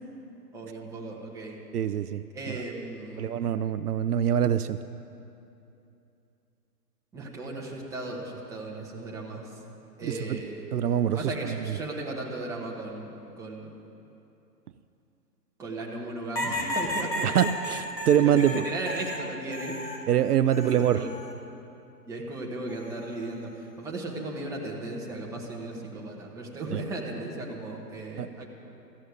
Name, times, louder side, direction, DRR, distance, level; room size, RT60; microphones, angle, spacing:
voice 1, 0.5-1.6 2.3-3.3 7.1-9.6 10.0-10.7 11.1-13.7 15.6-17.4 18.2-19.8 20.5-21.2 22.0-28.5, right 2 dB, 5° right, -2 dB, 1.0 m, -36 dB
voice 2, 1.7-2.6 3.2-4.8 10.0-10.4 10.7-11.5 17.2-18.7 20.1-21.0 26.7-26.8 28.2-28.3, right 10 dB, 65° right, 13 dB, 0.6 m, -25 dB
sound 1, 16.3-20.1 20.5-21.3 22.7-23.1, left 1 dB, 90° left, 1.7 m, -33 dB
14.5 x 6.3 x 9.4 m, 2.8 s
hypercardioid pair, 135°, 49 cm